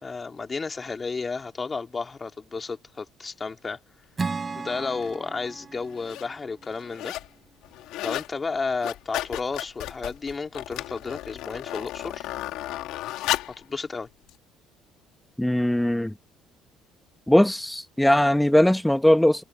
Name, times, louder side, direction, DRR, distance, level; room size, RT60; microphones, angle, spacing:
voice 1, 0.0-3.8 4.6-7.2 8.0-12.3 13.6-14.1, left 4 dB, 30° left, 2.7 m, -32 dB
Acoustic guitar / Strum, 4.2-7.6, right 4 dB, 30° right, 7.8 m, -36 dB
sound 1, 5.0-5.2 5.8-6.3 6.6-7.3 7.6-8.3 8.6-13.6 14.3-14.4, left 15 dB, 70° left, 4.1 m, -33 dB
voice 2, 15.4-16.1 17.3-19.4, left 1 dB, 5° left, 1.6 m, -20 dB
supercardioid pair, 70°, 0 cm